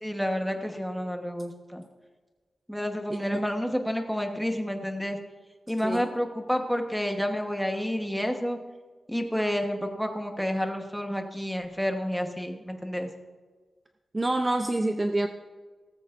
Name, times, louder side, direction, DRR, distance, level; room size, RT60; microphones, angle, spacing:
voice 1, 0.0-1.8 2.7-5.2 5.7-8.6 9.1-13.1, equal, ahead, 3 dB, 1.1 m, -29 dB
voice 2, 14.1-15.3, right 2 dB, 20° right, 5 dB, 0.6 m, -26 dB
18.0 x 14.5 x 2.6 m, 1.4 s
wide cardioid pair, 175°, 0 cm